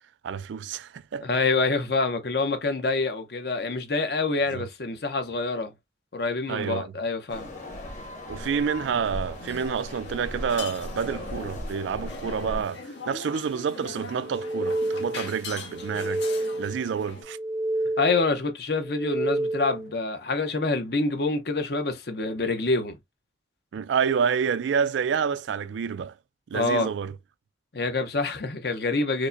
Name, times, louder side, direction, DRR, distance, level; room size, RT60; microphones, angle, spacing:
voice 1, 0.2-1.3 4.5-4.7 6.5-6.9 8.3-16.3 16.6-17.4 23.7-26.1 26.5-27.1, right 6 dB, 85° right, 0.3 m, -28 dB
voice 2, 1.2-5.7 6.1-7.5 18.0-23.0 26.5-26.9 27.7-29.3, left 3 dB, 60° left, 0.7 m, -26 dB
sound 1, 7.3-12.6, left 1 dB, 45° left, 1.2 m, -37 dB
sound 2, 9.3-17.2, left 4 dB, 80° left, 1.2 m, -41 dB
sound 3, 14.2-15.4 15.7-16.9 17.2-18.4 18.8-19.9, right 1 dB, ahead, 0.6 m, -29 dB
4.7 x 2.1 x 2.5 m
head